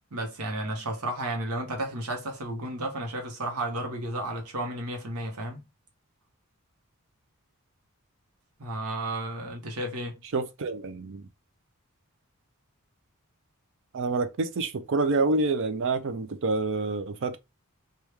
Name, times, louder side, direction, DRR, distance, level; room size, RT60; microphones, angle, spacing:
voice 1, 0.1-5.6 8.6-10.2, right 1 dB, 80° right, 1.0 m, -33 dB
voice 2, 10.3-11.2 13.9-17.4, right 3 dB, 60° right, 0.5 m, -27 dB
3.1 x 2.3 x 3.2 m
head